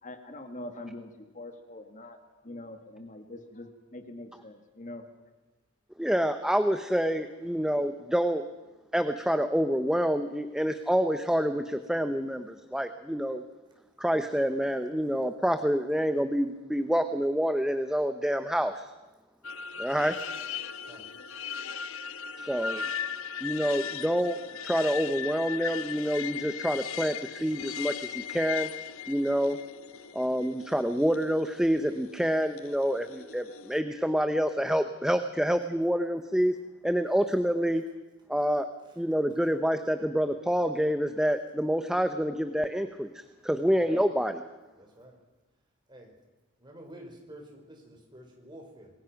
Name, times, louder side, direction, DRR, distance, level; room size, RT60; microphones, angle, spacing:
voice 1, 0.0-5.1, left 1 dB, 40° left, 6 dB, 2.0 m, -44 dB
voice 2, 6.0-8.4 8.9-13.4 14.0-18.9 19.8-20.1 22.4-22.9 23.4-28.7 29.1-29.6 30.1-36.6 36.8-37.8 38.3-38.7 39.0-44.4, equal, 5° right, 9 dB, 0.8 m, -27 dB
sound 1, 19.4-33.8, left 8 dB, 85° left, 1.1 m, -38 dB
voice 3, 44.8-45.1 45.9-46.1 46.6-48.9, right 1 dB, 20° right, 2 dB, 5.2 m, -49 dB
27.0 x 21.0 x 5.9 m, 1.2 s
head